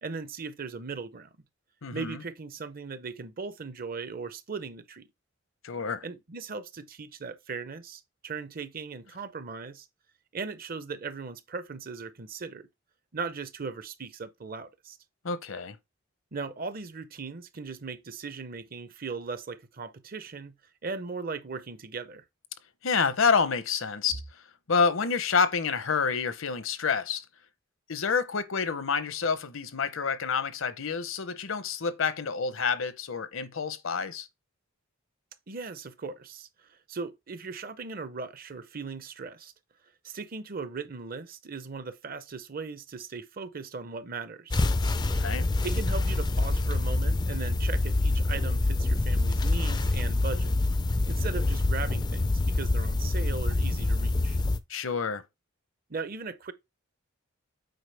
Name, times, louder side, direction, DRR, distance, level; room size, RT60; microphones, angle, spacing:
voice 1, 0.0-1.3 1.9-5.1 6.0-9.9 10.3-12.7 13.1-15.0 16.3-20.6 20.8-22.2 35.5-39.5 40.0-44.6 45.6-50.6 51.1-54.4 55.9-56.5, right 4 dB, 45° right, 0.6 m, -38 dB
voice 2, 1.8-2.2 5.6-6.0 15.2-15.8 22.8-24.2 24.7-27.2 27.9-34.3 45.2-45.4 54.7-55.2, left 5 dB, 70° left, 0.8 m, -28 dB
sound 1, 44.5-54.6, left 2 dB, 20° left, 0.4 m, -26 dB
7.9 x 4.8 x 3.3 m
head